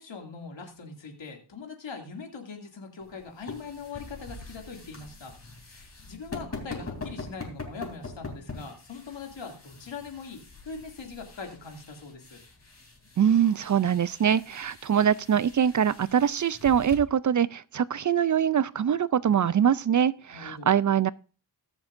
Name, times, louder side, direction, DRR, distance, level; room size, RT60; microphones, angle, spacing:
voice 1, 0.0-12.4 20.3-20.7, left 5 dB, 85° left, 2.6 m, -42 dB
sound 1, 3.0-17.0, left 3 dB, 35° left, 3.1 m, -43 dB
voice 2, 13.2-21.1, right 8 dB, 45° right, 0.4 m, -23 dB
21.0 x 7.2 x 2.6 m
wide cardioid pair, 100°, 44 cm